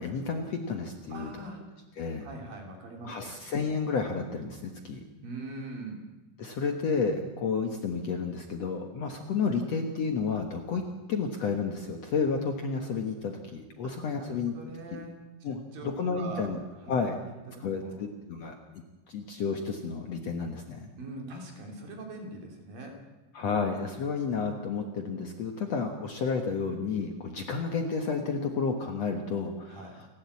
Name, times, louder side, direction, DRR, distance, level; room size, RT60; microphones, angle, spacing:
voice 1, 0.0-1.3 2.0-2.3 3.0-5.0 6.4-10.8 11.1-14.5 14.9-15.0 15.4-16.6 16.9-17.2 17.6-18.6 19.1-20.9 23.3-30.1, left 5 dB, 55° left, 4 dB, 2.0 m, -31 dB
voice 2, 1.1-1.6 2.2-3.4 5.2-6.1 13.8-13.9 14.2-15.2 15.7-16.5 16.8-17.0 17.5-18.0 21.0-23.0 29.7-30.0, right 2 dB, 65° right, 2 dB, 4.8 m, -42 dB
28.5 x 12.0 x 8.4 m, 1.1 s
omnidirectional pair, 4.4 m